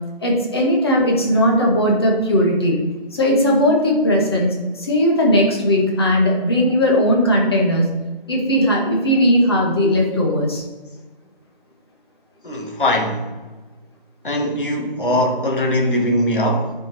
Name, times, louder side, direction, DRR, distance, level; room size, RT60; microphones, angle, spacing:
voice 1, 0.2-2.8 3.1-7.8 8.3-10.6, equal, 25° left, -2 dB, 1.7 m, -17 dB
voice 2, 12.4-13.2 14.2-16.7, left 1 dB, 60° left, 1 dB, 2.3 m, -20 dB
9.6 x 5.1 x 4.3 m, 1.2 s
figure-of-eight pair, 170°, 29 cm